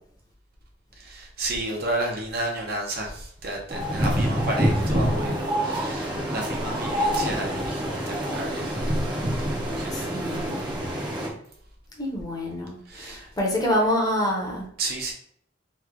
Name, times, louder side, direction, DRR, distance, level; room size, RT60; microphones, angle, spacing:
voice 1, 1.0-8.8 9.5-10.1 12.9-13.3 14.8-15.1, right 1 dB, 55° right, 0 dB, 0.8 m, -32 dB
sound 1, 3.7-11.3, equal, 25° right, 0.6 m, -26 dB
voice 2, 9.9-10.6 12.0-14.7, equal, 20° left, -2 dB, 0.7 m, -26 dB
3.0 x 2.3 x 3.6 m, 0.65 s
head